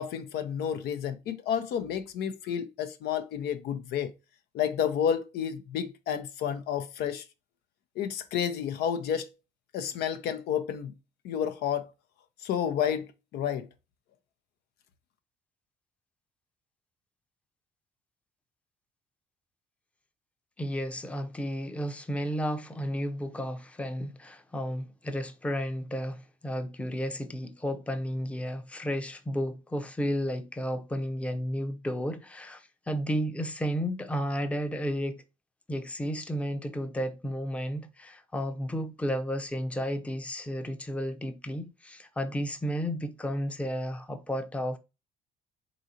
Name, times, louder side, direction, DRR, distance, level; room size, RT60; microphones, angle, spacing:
voice 1, 0.0-4.1 4.5-7.2 8.0-9.3 9.7-10.9 11.2-11.9 12.4-13.7, left 8 dB, 75° left, 0.6 m, -30 dB
voice 2, 20.6-35.2 35.7-44.8, equal, 5° left, 0.6 m, -32 dB
3.9 x 3.8 x 2.8 m
cardioid pair, 110°, 17 cm